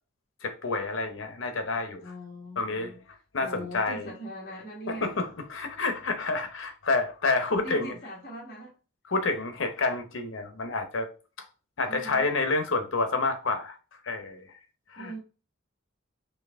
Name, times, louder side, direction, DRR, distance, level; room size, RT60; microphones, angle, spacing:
voice 1, 0.4-2.0 2.6-2.9 3.3-4.1 4.9-7.9 9.1-11.1 11.8-13.8 14.0-14.5 14.9-15.1, left 3 dB, 80° left, 0.8 m, -29 dB
voice 2, 2.0-3.0 3.4-5.2 7.6-8.7 11.9-12.3 15.0-15.2, right 1 dB, 45° left, 1.3 m, -41 dB
4.5 x 2.9 x 3.5 m
head